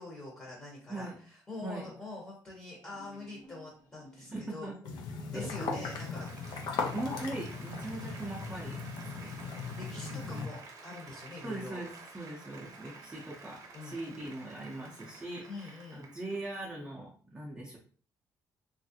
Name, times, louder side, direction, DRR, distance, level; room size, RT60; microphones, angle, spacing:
voice 1, 0.0-4.7 5.3-6.3 9.2-9.4 9.7-11.8 13.7-14.0 15.4-16.1, left 2 dB, 20° left, -4 dB, 0.9 m, -45 dB
sound 1, 2.8-4.8, left 2 dB, 55° left, 1.4 m, -56 dB
voice 2, 4.3-4.7 5.3-5.8 6.5-6.6 6.9-9.5 10.0-10.5 11.4-17.8, right 2 dB, 10° right, -4 dB, 0.5 m, -41 dB
sound 2, 4.8-10.5, left 5 dB, 75° left, 0.6 m, -38 dB
Applause, 5.2-16.8, right 4 dB, 50° right, 0.6 m, -51 dB
3.1 x 2.4 x 2.7 m, 0.44 s
cardioid pair, 150°, 7 cm